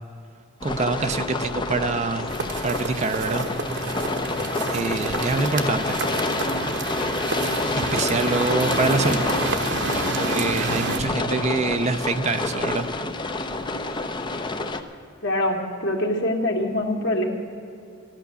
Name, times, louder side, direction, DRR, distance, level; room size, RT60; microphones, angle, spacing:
sound 1, 0.6-14.8, left 2 dB, 25° left, 0.7 m, -28 dB
voice 1, 0.6-2.3 2.6-3.5 4.7-6.0 7.7-9.3 10.2-12.9, right 3 dB, 35° right, 9 dB, 0.6 m, -25 dB
sound 2, 2.3-11.0, right 3 dB, 60° right, 1.1 m, -29 dB
voice 2, 15.2-17.2, left 1 dB, 60° left, 2 dB, 2.0 m, -24 dB
14.0 x 11.5 x 6.9 m, 2.5 s
head